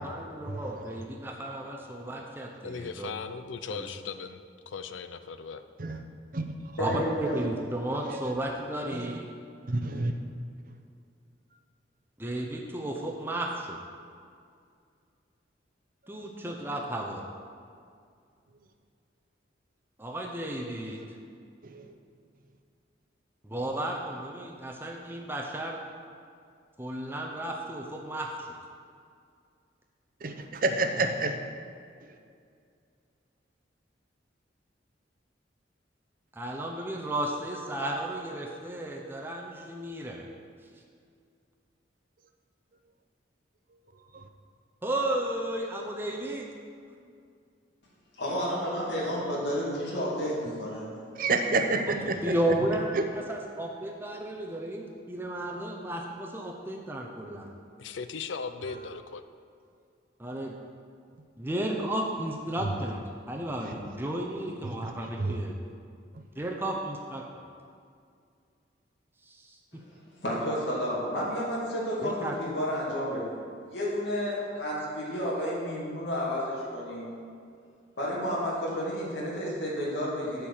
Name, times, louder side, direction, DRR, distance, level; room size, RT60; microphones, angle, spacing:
voice 1, 0.0-3.1 3.7-3.9 6.8-9.3 12.2-13.8 16.1-17.2 20.0-21.0 23.4-25.8 26.8-28.3 36.4-40.2 44.8-46.5 52.0-57.5 60.2-60.5 61.4-63.0 63.3-65.5 66.4-67.2 72.0-72.3, right 1 dB, 10° right, -1 dB, 0.6 m, -33 dB
voice 2, 0.7-1.0 5.8-6.0 6.3-6.5 7.3-7.5 8.1-8.3 8.9-9.2 9.7-10.2 20.9-21.0 21.6-21.9 30.2-31.4 44.1-44.2 51.2-52.6 52.9-53.1 62.6-62.7 63.6-63.7 64.8-64.9 65.2-65.4, right 3 dB, 50° right, 6 dB, 0.6 m, -29 dB
voice 3, 2.6-5.6 57.8-59.2, left 5 dB, 85° left, 11 dB, 0.5 m, -38 dB
voice 4, 6.8-7.4 48.2-50.8 70.2-73.4 73.7-77.1 78.0-80.5, equal, 65° left, -6 dB, 2.3 m, -31 dB
8.4 x 4.6 x 7.2 m, 2.3 s
head